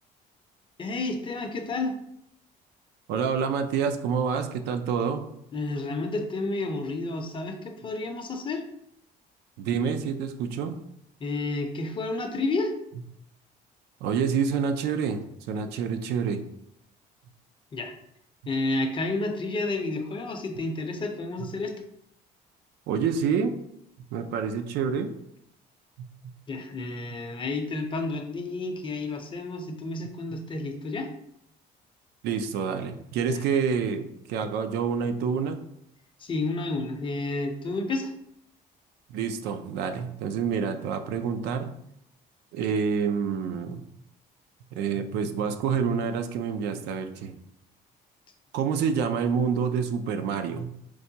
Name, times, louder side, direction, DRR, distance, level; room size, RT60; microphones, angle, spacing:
voice 1, 0.8-1.9 5.5-8.6 11.2-12.7 17.7-17.9 18.5-21.8 26.5-31.1 33.3-33.4 36.2-38.1, left 2 dB, 30° left, 5 dB, 0.5 m, -30 dB
voice 2, 3.1-5.3 9.6-10.8 14.0-16.4 22.9-23.6 24.1-25.1 32.2-35.6 39.1-41.7 42.5-43.8 44.7-47.4 48.5-50.7, right 6 dB, 80° right, 8 dB, 0.4 m, -27 dB
4.6 x 2.2 x 2.7 m, 0.75 s
cardioid pair, 110°, 17 cm